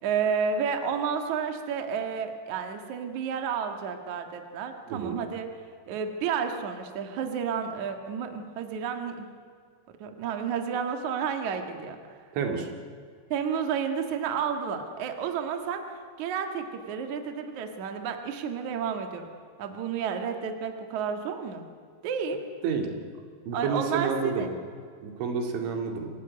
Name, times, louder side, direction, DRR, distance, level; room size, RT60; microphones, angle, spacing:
voice 1, 0.0-5.5 5.9-9.3 10.0-12.0 13.3-15.8 16.2-19.3 19.6-21.6 22.0-22.4 23.5-24.5, right 7 dB, 50° right, 5 dB, 2.6 m, -31 dB
voice 2, 12.3-12.7 22.6-22.9 23.5-24.5 25.0-26.1, right 5 dB, 80° right, 4 dB, 4.8 m, -29 dB
25.5 x 17.5 x 9.6 m, 2.1 s
omnidirectional pair, 5.2 m